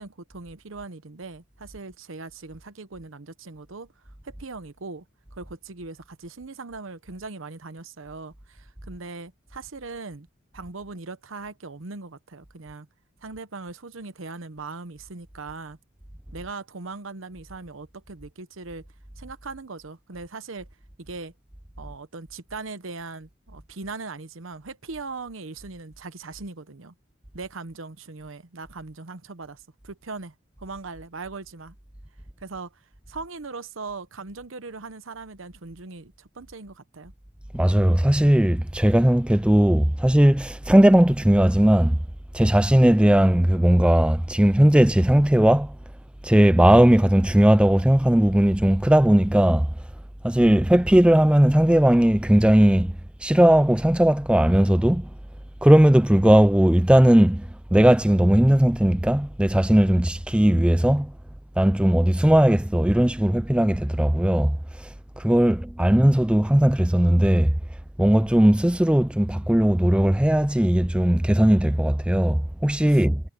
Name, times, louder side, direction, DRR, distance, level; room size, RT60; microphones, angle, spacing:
voice 1, 0.0-3.9 4.2-5.0 5.3-10.3 10.5-12.9 13.2-15.8 16.3-18.8 19.2-20.7 21.0-21.3 21.8-26.9 27.3-31.8 32.4-32.8 33.1-37.1 72.9-73.0, right 3 dB, 80° right, 1.0 m, -39 dB
voice 2, 37.5-42.0 42.3-45.7 46.2-49.7 50.2-55.1 55.6-57.5 57.7-61.1 61.6-64.6 65.2-67.6 68.0-73.2, right 1 dB, 5° right, 0.4 m, -18 dB
head